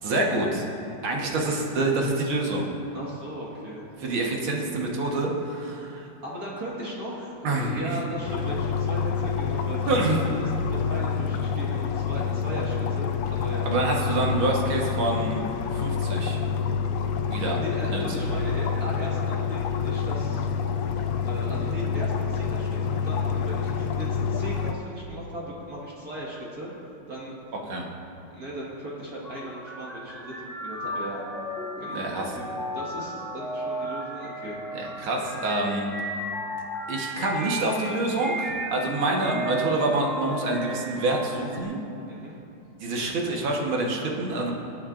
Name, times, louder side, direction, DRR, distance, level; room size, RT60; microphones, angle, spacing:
voice 1, 0.0-0.7 1.0-2.7 4.0-6.1 7.4-8.0 9.9-10.3 13.7-15.4 15.7-16.4 17.3-17.6 17.9-18.0 27.7-27.9 31.8-32.4 34.7-35.9 36.9-41.8 42.8-44.5, right 2 dB, 75° right, -1 dB, 2.1 m, -27 dB
voice 2, 1.0-1.4 2.9-3.9 4.1-4.5 6.2-13.7 17.6-20.5 21.3-26.7 27.1-27.3 28.3-31.2 31.8-34.6 39.1-39.3 42.1-42.4, equal, 45° right, -5 dB, 2.1 m, -37 dB
sound 1, 8.3-24.7, left 6 dB, 75° left, 1.3 m, -27 dB
sound 2, 29.2-41.6, right 1 dB, ahead, 0.9 m, -34 dB
21.0 x 8.7 x 2.5 m, 2.8 s
omnidirectional pair, 2.3 m